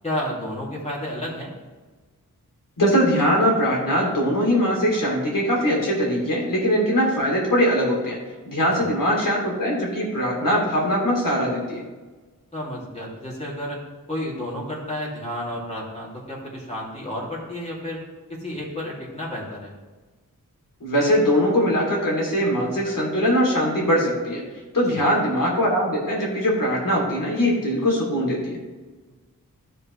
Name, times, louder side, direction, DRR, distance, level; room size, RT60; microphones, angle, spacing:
voice 1, 0.0-1.5 12.5-13.8 14.1-18.0 18.3-19.7 24.9-25.0 29.1-29.2, left 1 dB, 20° left, -6 dB, 2.7 m, -31 dB
voice 2, 2.8-8.2 8.4-11.8 20.8-24.4 24.7-28.6, equal, 65° left, -3 dB, 3.0 m, -21 dB
14.0 x 5.4 x 3.2 m, 1.3 s
wide cardioid pair, 80°, 35 cm